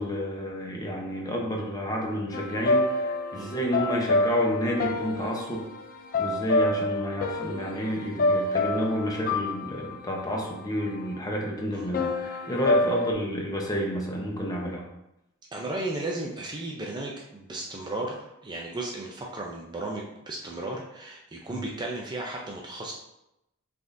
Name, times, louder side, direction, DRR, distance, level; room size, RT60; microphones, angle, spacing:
voice 1, 0.0-5.6 6.2-14.8 21.5-21.6, equal, 15° left, -1 dB, 0.8 m, -30 dB
sound 1, 2.3-11.2 11.9-13.1, left 2 dB, 40° left, 0.4 m, -28 dB
voice 2, 15.5-22.9, right 2 dB, 20° right, -1 dB, 0.5 m, -35 dB
5.9 x 3.4 x 2.6 m, 0.87 s
head